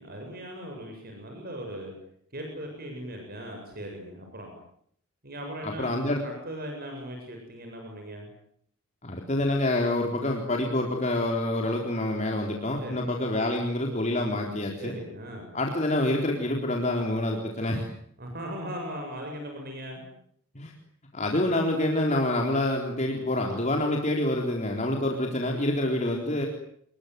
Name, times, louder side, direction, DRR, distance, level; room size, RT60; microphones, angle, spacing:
voice 1, 0.0-1.9 2.3-4.5 5.2-5.9 6.2-8.3 12.8-13.1 14.8-15.5 18.2-20.0, equal, 45° right, 2 dB, 7.8 m, -38 dB
voice 2, 5.6-6.2 9.0-15.0 15.5-17.9 20.5-20.7 21.1-26.5, left 1 dB, 35° left, 1 dB, 4.0 m, -27 dB
28.0 x 22.0 x 9.5 m, 0.68 s
head